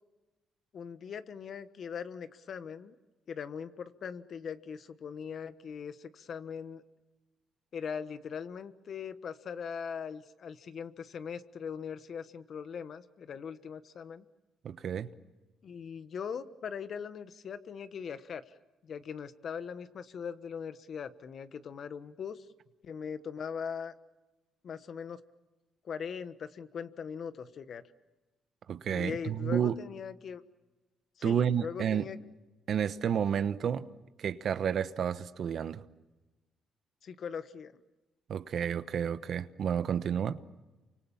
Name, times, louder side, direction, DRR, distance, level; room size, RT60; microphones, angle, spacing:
voice 1, 0.7-2.9 3.3-6.8 7.7-14.2 15.6-18.6 18.8-22.4 22.8-23.9 24.6-25.2 25.8-27.8 28.9-30.4 31.2-32.2 37.0-37.8, left 7 dB, 55° left, 1.3 m, -40 dB
voice 2, 14.6-15.1 28.7-29.8 31.2-32.1 32.7-33.9 34.2-35.8 38.3-40.4, right 8 dB, 60° right, 1.1 m, -30 dB
29.0 x 25.0 x 7.2 m
cardioid pair, 90°, 0 cm